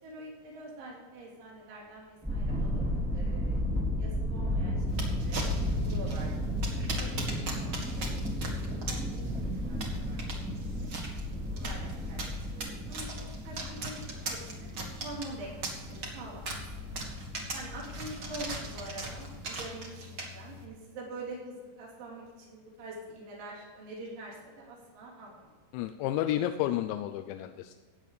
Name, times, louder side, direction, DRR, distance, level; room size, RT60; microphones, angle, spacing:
voice 1, 0.0-2.8 3.1-3.6 4.0-4.9 5.2-6.4 6.7-9.2 9.6-10.5 10.8-10.9 11.5-14.0 14.3-14.7 15.0-16.5 17.5-25.5, right 2 dB, 80° right, -4 dB, 5.8 m, -45 dB
sound 1, 2.2-19.4, equal, 5° right, 0.8 m, -34 dB
sound 2, 4.9-20.6, right 2 dB, 60° right, 1.1 m, -40 dB
voice 2, 25.7-27.7, left 12 dB, 80° left, 6 dB, 2.8 m, -31 dB
15.0 x 9.2 x 5.0 m, 1.5 s
omnidirectional pair, 5.3 m